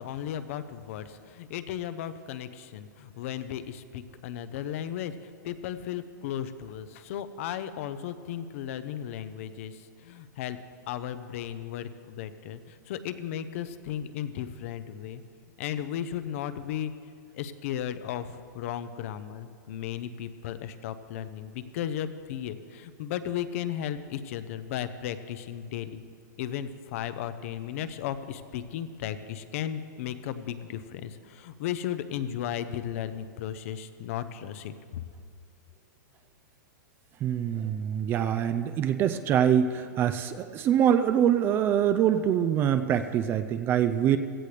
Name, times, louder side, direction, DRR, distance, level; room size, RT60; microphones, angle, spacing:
voice 1, 0.0-5.1 5.4-10.6 10.9-15.2 15.6-16.9 17.4-26.0 26.4-34.7, left 10 dB, 45° left, 12 dB, 0.7 m, -35 dB
voice 2, 37.2-44.2, right 9 dB, 20° right, 10 dB, 0.4 m, -24 dB
16.5 x 14.5 x 3.4 m, 2.2 s
hypercardioid pair, 150°, 10 cm